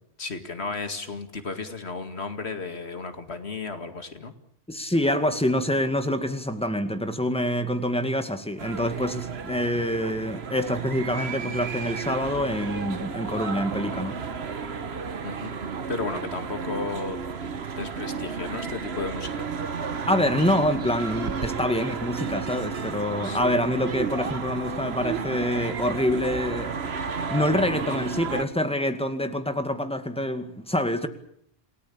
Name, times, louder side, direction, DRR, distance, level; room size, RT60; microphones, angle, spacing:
voice 1, 0.2-4.3 15.2-15.6 15.9-17.2 17.8-19.5 23.2-23.5, left 4 dB, 75° left, 8 dB, 2.4 m, -34 dB
voice 2, 4.7-14.2 20.0-26.7 27.3-31.1, left 1 dB, 5° left, 8 dB, 2.1 m, -26 dB
sound 1, 8.6-28.5, right 5 dB, 70° right, 1.5 m, -32 dB
28.0 x 18.0 x 8.7 m, 0.70 s
omnidirectional pair, 1.1 m